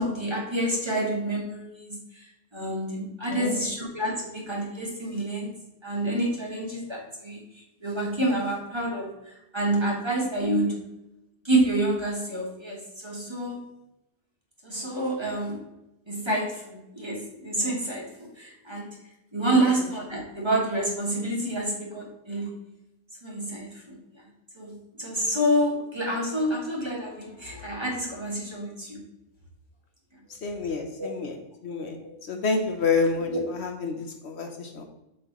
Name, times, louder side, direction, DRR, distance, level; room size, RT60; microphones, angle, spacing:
voice 1, 0.0-2.3 2.5-5.5 5.8-7.4 7.8-10.8 11.4-13.6 14.6-15.7 16.1-19.0 19.3-22.5 23.2-24.0 24.6-29.0 31.0-31.2 32.0-32.1, right 1 dB, 20° right, -2 dB, 1.9 m, -28 dB
voice 2, 30.3-34.8, left 4 dB, 65° left, 5 dB, 1.1 m, -29 dB
7.8 x 6.3 x 3.0 m, 0.88 s
omnidirectional pair, 1.2 m